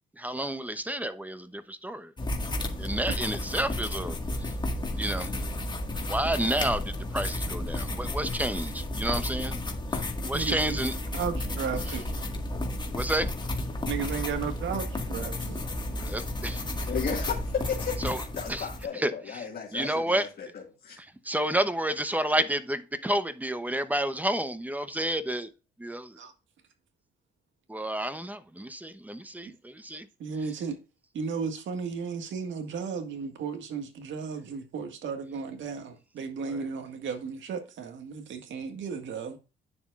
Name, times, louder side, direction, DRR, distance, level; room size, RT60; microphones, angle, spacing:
voice 1, 0.2-2.3 2.8-4.5 4.9-5.4 6.1-9.6 9.9-10.9 11.9-12.0 12.9-13.3 16.0-16.6 18.0-18.2 18.5-18.7 18.9-20.3 21.0-25.5 25.8-26.2 27.7-30.1 36.5-36.6, right 1 dB, 10° right, 0.9 m, -30 dB
sound 1, 2.2-18.8, left 1 dB, 20° left, 1.9 m, -32 dB
voice 2, 10.3-10.8 11.1-12.2 13.9-15.7 26.2-26.3 30.2-30.8 31.1-39.4, right 6 dB, 70° right, 1.8 m, -34 dB
voice 3, 16.9-17.9 18.4-20.5 20.8-21.0, left 7 dB, 50° left, 2.0 m, -34 dB
9.5 x 7.1 x 2.5 m
cardioid pair, 90°, 20 cm